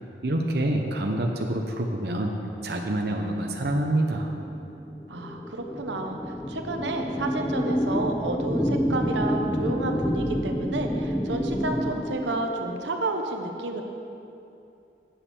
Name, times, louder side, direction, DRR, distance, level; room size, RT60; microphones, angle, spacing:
voice 1, 0.2-2.3 2.6-4.4, right 1 dB, 60° right, 2 dB, 0.8 m, -26 dB
sound 1, 4.1-12.9, equal, 10° left, 0.3 m, -28 dB
voice 2, 5.1-13.8, right 2 dB, 90° right, 4 dB, 0.9 m, -31 dB
9.0 x 7.2 x 7.0 m, 2.7 s
head